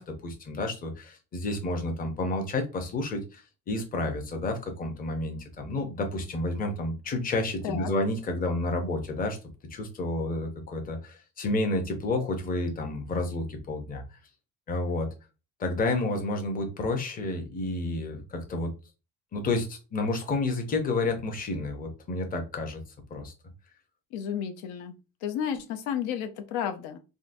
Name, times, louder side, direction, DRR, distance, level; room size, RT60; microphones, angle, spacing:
voice 1, 0.0-3.4 3.7-9.4 9.7-14.0 14.7-15.1 15.6-18.7 19.3-22.8 23.1-23.3, left 2 dB, 25° left, 4 dB, 0.6 m, -30 dB
voice 2, 24.1-24.9 25.2-27.0, left 8 dB, 90° left, 6 dB, 0.7 m, -32 dB
3.7 x 2.1 x 2.6 m, 0.30 s
cardioid pair, 155°, 37 cm